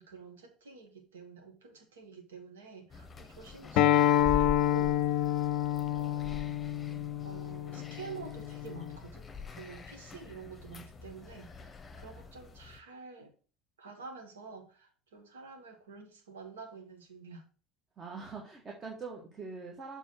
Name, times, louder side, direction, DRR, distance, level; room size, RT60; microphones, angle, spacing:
voice 1, 0.0-5.5 5.9-6.6 7.2-13.3 13.8-17.4, right 5 dB, 75° right, 1.5 m, -48 dB
sound 1, 2.9-12.8, left 6 dB, 25° left, 0.9 m, -44 dB
Acoustic guitar, 3.8-9.0, left 12 dB, 55° left, 0.5 m, -28 dB
voice 2, 18.0-20.0, right 4 dB, 30° right, 1.6 m, -43 dB
7.2 x 3.5 x 6.0 m
figure-of-eight pair, 70°, 0 cm